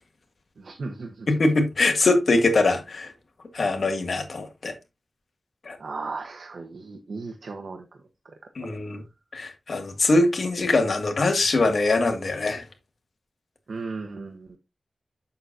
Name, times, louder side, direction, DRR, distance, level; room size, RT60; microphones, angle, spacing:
voice 1, 0.6-1.3 5.8-7.9 13.7-14.6, right 3 dB, 85° right, 1.1 m, -36 dB
voice 2, 1.3-3.1 3.5-4.7 5.7-5.8 8.6-9.0 9.3-12.6, left 2 dB, 70° left, 2.0 m, -22 dB
8.1 x 7.0 x 2.6 m
wide cardioid pair, 95°, 0 cm